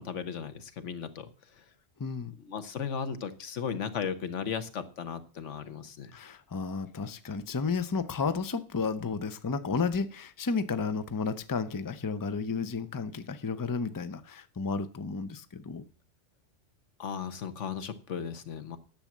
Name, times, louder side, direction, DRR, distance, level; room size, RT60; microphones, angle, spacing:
voice 1, 0.0-1.6 2.4-6.1 17.0-18.8, left 7 dB, 90° left, 1.4 m, -36 dB
voice 2, 2.0-2.3 6.1-15.8, left 5 dB, 20° left, 0.6 m, -32 dB
10.5 x 7.2 x 7.3 m
omnidirectional pair, 1.2 m